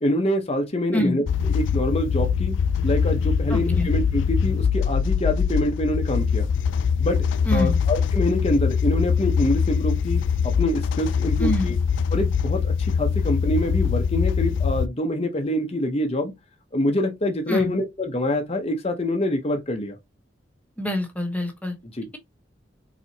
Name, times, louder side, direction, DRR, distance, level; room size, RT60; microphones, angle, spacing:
voice 1, 0.0-2.5 2.8-6.5 7.0-7.2 7.5-11.8 12.1-16.3 16.7-20.0 21.9-22.1, left 1 dB, 35° left, 0.9 m, -25 dB
sound 1, 1.3-14.9, left 6 dB, 75° left, 0.3 m, -23 dB
voice 2, 3.5-3.9 7.5-7.8 11.4-11.7 17.5-17.7 20.8-21.8, left 1 dB, 10° left, 1.1 m, -25 dB
4.6 x 4.1 x 2.8 m
head